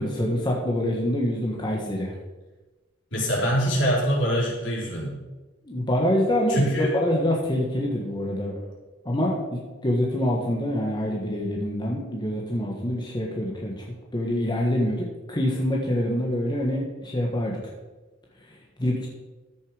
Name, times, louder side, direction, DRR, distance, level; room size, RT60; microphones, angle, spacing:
voice 1, 0.0-2.1 5.6-8.7 9.0-13.8 14.1-17.6 18.8-19.1, left 1 dB, 20° left, -2 dB, 1.4 m, -26 dB
voice 2, 3.1-5.2 6.5-6.9, equal, 65° left, -4 dB, 4.0 m, -24 dB
14.0 x 6.6 x 5.0 m, 1.2 s
head